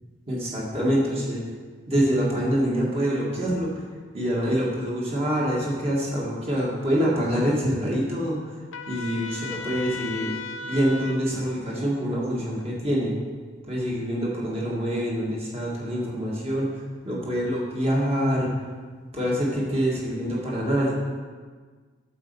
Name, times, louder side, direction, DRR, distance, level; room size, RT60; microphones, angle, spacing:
voice 1, 0.3-1.4 1.9-3.7 4.1-8.5 8.9-10.3 10.6-13.1 13.7-18.5 19.1-21.0, equal, 30° right, -5 dB, 1.8 m, -25 dB
Trumpet, 8.7-11.2, left 4 dB, 85° left, 0.7 m, -35 dB
8.4 x 4.3 x 6.9 m, 1.5 s
head